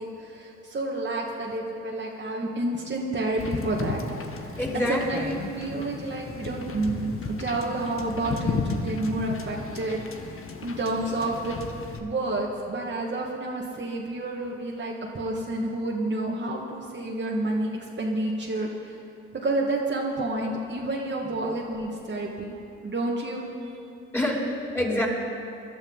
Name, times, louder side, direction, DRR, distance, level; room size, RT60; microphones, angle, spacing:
voice 1, 0.0-4.0 4.3-10.3 10.6-11.6 12.0-17.7 18.0-19.0 19.4-22.6 22.8-23.4, right 2 dB, 35° right, -2 dB, 2.0 m, -29 dB
Wind / Boat Water vehicle, 3.4-12.0, left 4 dB, 40° left, 1.6 m, -34 dB
voice 2, 4.6-5.5 24.1-25.1, left 1 dB, 5° left, -3 dB, 4.4 m, -27 dB
21.0 x 12.0 x 4.0 m, 2.7 s
hypercardioid pair, 60°, 32 cm